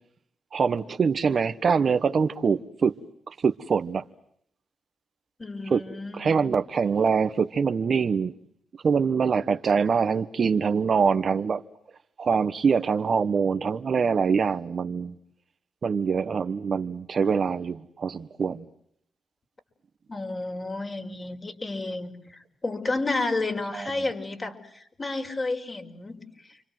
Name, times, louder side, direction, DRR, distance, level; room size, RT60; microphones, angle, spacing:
voice 1, 0.5-2.9 3.3-4.0 5.7-5.8 6.2-8.3 8.8-11.6 12.2-15.1 15.8-18.6 23.7-23.9, right 5 dB, 60° right, 1.2 m, -24 dB
voice 2, 5.4-6.4 20.1-26.6, left 2 dB, 35° left, 5.4 m, -31 dB
30.0 x 25.5 x 7.8 m
supercardioid pair, 55°, 0 cm